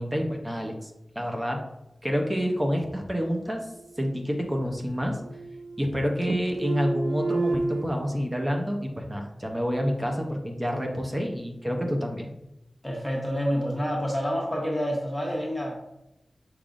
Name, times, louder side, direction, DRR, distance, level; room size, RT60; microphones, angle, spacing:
voice 1, 0.0-1.6 2.0-3.7 4.0-5.2 5.8-12.3, equal, 20° right, 2 dB, 0.7 m, -28 dB
sound 1, 3.7-4.7 5.0-6.0 6.2-7.8, right 3 dB, 75° right, 0.4 m, -31 dB
voice 2, 12.8-15.8, equal, 10° left, -2 dB, 1.1 m, -28 dB
5.8 x 3.5 x 2.5 m, 0.88 s
wide cardioid pair, 60°, 0 cm